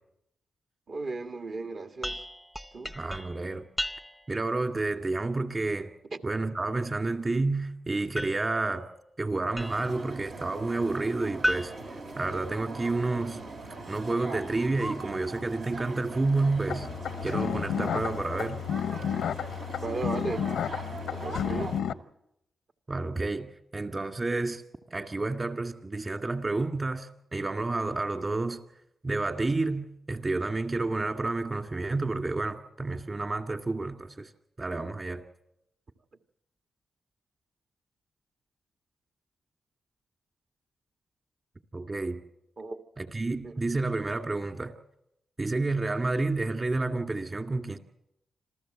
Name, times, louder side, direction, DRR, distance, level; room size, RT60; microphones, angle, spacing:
voice 1, 0.9-2.2 2.7-2.9 6.1-6.2 19.8-20.5 21.1-21.8 42.6-42.8 43.4-43.5, right 3 dB, 60° right, 6 dB, 1.7 m, -35 dB
sound 1, 2.0-4.4 8.2-10.0 11.4-12.9, equal, 5° right, 0.7 m, -36 dB
voice 2, 3.0-3.6 4.3-5.9 6.2-8.9 9.2-11.7 12.2-13.4 13.9-16.9 17.2-18.6 22.9-24.6 24.9-28.6 29.0-34.3 34.6-35.2 41.7-42.2 43.0-44.7 45.4-47.8, right 3 dB, 35° right, 6 dB, 2.2 m, -30 dB
sound 2, 9.6-21.8, right 2 dB, 80° right, 3.1 m, -41 dB
sound 3, 16.7-21.9, left 9 dB, 85° left, 0.7 m, -32 dB
26.5 x 14.5 x 7.7 m, 0.82 s
supercardioid pair, 55°, 0 cm